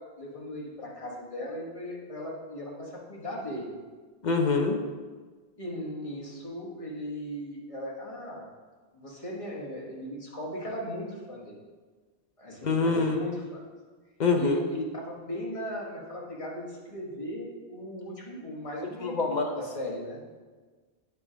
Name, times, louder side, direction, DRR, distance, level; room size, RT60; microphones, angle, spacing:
voice 1, 0.0-3.7 5.6-8.5 8.9-11.6 12.4-13.6 14.3-20.2, equal, 30° left, -3 dB, 1.3 m, -37 dB
voice 2, 4.2-4.8 12.6-13.2 14.2-14.6 19.0-19.5, left 4 dB, 50° left, 3 dB, 0.6 m, -25 dB
8.2 x 3.3 x 4.9 m, 1.4 s
omnidirectional pair, 1.1 m